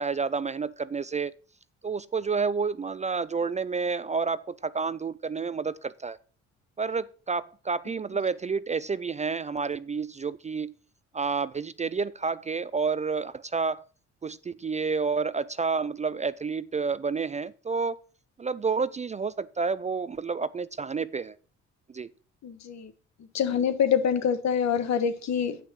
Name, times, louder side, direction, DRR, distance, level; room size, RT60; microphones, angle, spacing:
voice 1, 0.0-1.3 1.8-6.2 6.8-10.7 11.1-13.8 14.2-18.0 18.4-21.4 21.9-22.1, right 5 dB, 25° right, 0.4 m, -29 dB
voice 2, 22.4-22.9 23.2-25.6, left 7 dB, 65° left, 1.4 m, -26 dB
8.6 x 5.9 x 6.2 m
cardioid pair, 90°, 30 cm